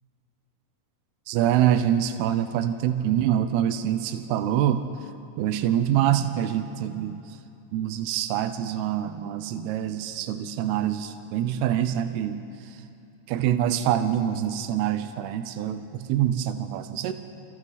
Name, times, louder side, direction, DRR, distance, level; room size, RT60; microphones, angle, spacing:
voice 1, 1.3-4.9 5.4-7.4 7.7-12.8 13.3-17.1, right 10 dB, 80° right, 9 dB, 2.8 m, -25 dB
30.0 x 27.5 x 4.1 m, 2.6 s
omnidirectional pair, 4.6 m